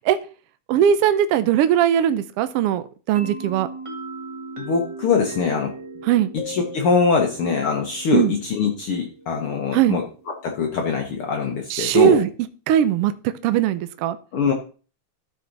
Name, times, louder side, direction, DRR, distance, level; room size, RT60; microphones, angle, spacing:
voice 1, 0.7-3.7 6.1-6.3 8.1-8.3 9.7-10.0 11.7-12.3 12.7-13.1 13.4-14.2, right 10 dB, 85° right, 12 dB, 1.3 m, -19 dB
sound 1, 3.1-10.8, right 3 dB, 15° right, 1.1 m, -39 dB
voice 2, 4.6-5.7 6.5-10.0 10.4-12.2 14.3-14.5, left 5 dB, 60° left, 2 dB, 1.6 m, -22 dB
sound 2, 6.4-7.9, left 6 dB, 85° left, 2.7 m, -39 dB
13.5 x 5.0 x 4.0 m, 0.37 s
omnidirectional pair, 3.4 m